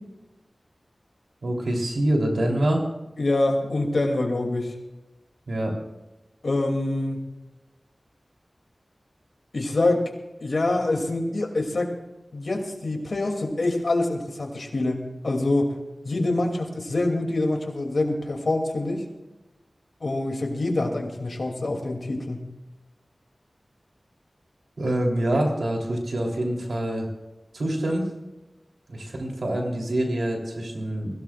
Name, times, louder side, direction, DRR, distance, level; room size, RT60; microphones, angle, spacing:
voice 1, 1.4-2.8 5.5-5.7 24.8-27.1 27.5-28.1 28.9-31.2, right 1 dB, 90° right, 0 dB, 3.5 m, -25 dB
voice 2, 3.2-4.7 6.4-7.3 9.5-10.1 10.4-11.9 12.3-15.7 16.0-19.0 20.0-22.5, left 2 dB, 70° left, 2 dB, 2.8 m, -25 dB
22.0 x 17.0 x 2.5 m, 1.0 s
wide cardioid pair, 60°, 0 cm